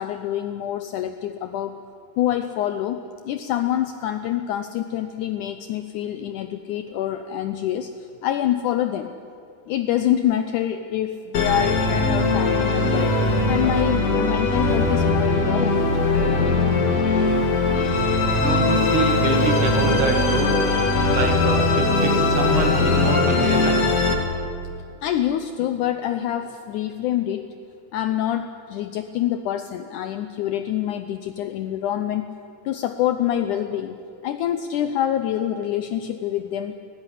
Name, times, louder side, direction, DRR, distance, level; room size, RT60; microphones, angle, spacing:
voice 1, 0.0-1.8 2.2-9.1 9.7-13.1 13.5-15.9 25.0-27.5 27.9-32.3 32.7-34.0 34.2-36.8, left 11 dB, 80° left, 9 dB, 1.8 m, -26 dB
Musical instrument, 11.3-24.1, left 3 dB, 50° left, 2.8 m, -20 dB
voice 2, 18.4-20.6 21.1-23.8, right 4 dB, 60° right, 3 dB, 3.5 m, -25 dB
19.0 x 16.0 x 9.9 m, 2.4 s
omnidirectional pair, 4.2 m